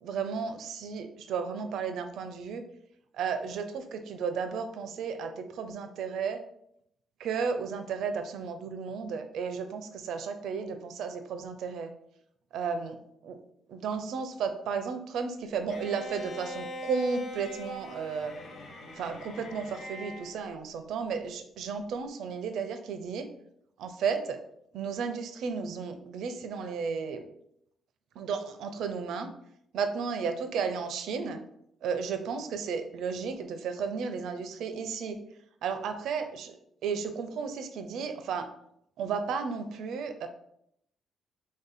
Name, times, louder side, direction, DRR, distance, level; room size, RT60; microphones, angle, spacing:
voice 1, 0.0-2.6 3.1-6.4 7.2-11.9 12.5-12.9 13.2-13.4 13.7-18.3 19.0-23.3 23.8-24.4 24.7-27.2 28.2-29.3 29.7-31.4 31.8-35.2 35.6-36.6 36.8-38.5 39.0-40.3, right 5 dB, 75° right, 7 dB, 0.4 m, -33 dB
Bowed string instrument, 15.7-20.4, left 1 dB, 65° left, 0.7 m, -42 dB
3.1 x 2.7 x 4.0 m, 0.74 s
cardioid pair, 90°, 0 cm